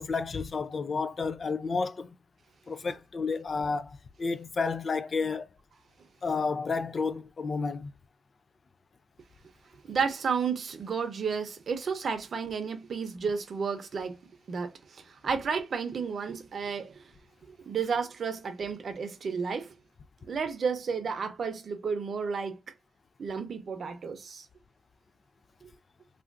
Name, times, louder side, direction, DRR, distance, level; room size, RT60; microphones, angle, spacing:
voice 1, 0.0-2.2 2.7-5.5 6.2-7.9, left 4 dB, 45° left, 0.3 m, -31 dB
voice 2, 9.8-14.2 14.5-17.0 17.5-19.7 20.3-22.6 23.2-24.5 25.6-25.7, right 5 dB, 60° right, 0.7 m, -32 dB
3.4 x 2.4 x 2.4 m
cardioid pair, 105°, 0 cm